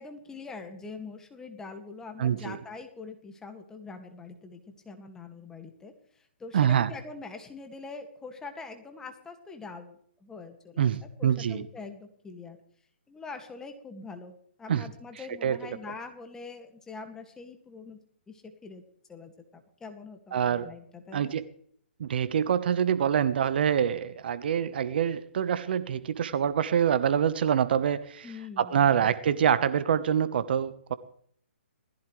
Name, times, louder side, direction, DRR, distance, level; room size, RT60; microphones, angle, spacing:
voice 1, 0.0-10.9 11.2-12.6 13.1-18.0 18.3-18.8 19.1-21.3 28.2-29.1, left 4 dB, 10° left, 5 dB, 2.0 m, -44 dB
voice 2, 2.2-2.6 6.5-6.9 10.8-11.6 14.7-14.8 15.4-15.6 20.3-20.7 21.1-21.4 22.0-28.3 28.6-30.9, right 8 dB, 55° right, 13 dB, 1.1 m, -25 dB
20.0 x 15.0 x 3.3 m, 0.63 s
hypercardioid pair, 145°, 6 cm